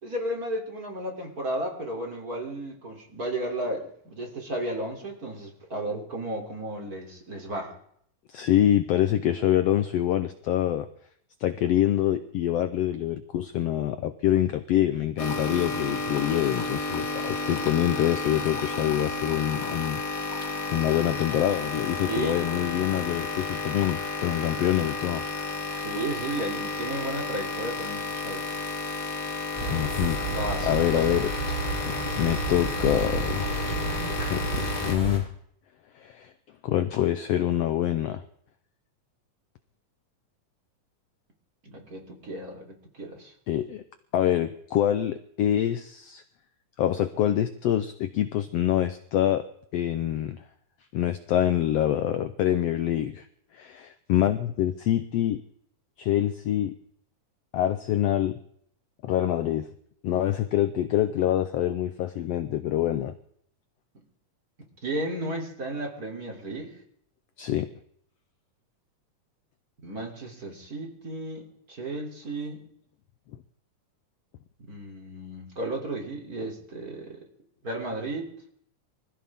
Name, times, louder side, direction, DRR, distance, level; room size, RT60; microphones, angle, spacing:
voice 1, 0.0-7.7 22.1-22.4 24.6-24.9 25.8-28.5 30.2-31.2 41.6-43.3 63.9-64.0 64.8-66.7 69.8-72.6 74.7-77.3 77.6-78.3, right 1 dB, 30° right, 1 dB, 3.5 m, -34 dB
voice 2, 8.3-10.9 11.4-20.3 20.7-25.2 29.2-29.4 29.7-30.2 30.6-31.3 31.9-33.9 34.3-35.3 35.9-36.3 36.6-38.2 43.5-43.8 44.1-46.2 46.8-49.5 49.7-50.4 50.9-53.3 53.5-55.4 56.0-56.8 57.5-58.4 59.0-59.7 60.0-63.1 67.4-67.7, left 12 dB, 80° left, 10 dB, 1.4 m, -25 dB
sound 1, 15.2-35.0, left 3 dB, 40° left, 1.2 m, -32 dB
sound 2, 29.6-35.2, right 3 dB, 10° left, 6.7 m, -31 dB
25.0 x 15.5 x 3.7 m, 0.67 s
omnidirectional pair, 3.7 m